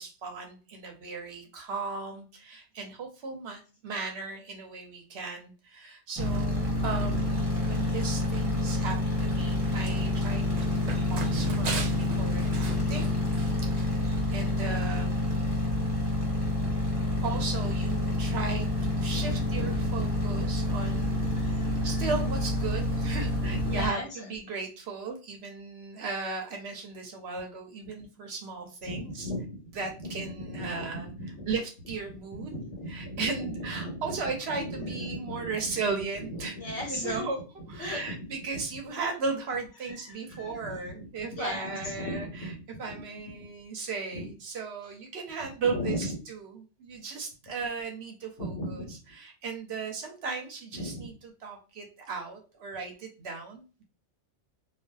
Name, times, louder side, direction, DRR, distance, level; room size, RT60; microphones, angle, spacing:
voice 1, 0.0-13.1 13.6-14.0 14.3-15.2 17.2-21.3 21.8-29.3 29.7-31.1 31.5-32.6 32.9-36.6 36.9-37.4 37.7-42.5 42.8-53.8, right 4 dB, 65° right, 2 dB, 0.8 m, -36 dB
sound 1, 6.2-23.9, left 2 dB, 30° right, 0.9 m, -28 dB
Run, 9.2-14.3, right 4 dB, 85° right, 0.3 m, -40 dB
voice 2, 21.2-21.9 23.4-24.0 28.9-30.1 30.3-31.5 32.5-35.7 36.3-37.3 37.8-38.0 39.9-40.8 41.3-42.5 44.1-44.3 45.7-46.1 48.4-48.9 50.8-51.1, left 1 dB, 70° left, -1 dB, 1.2 m, -37 dB
2.5 x 2.3 x 2.2 m, 0.34 s
omnidirectional pair, 1.3 m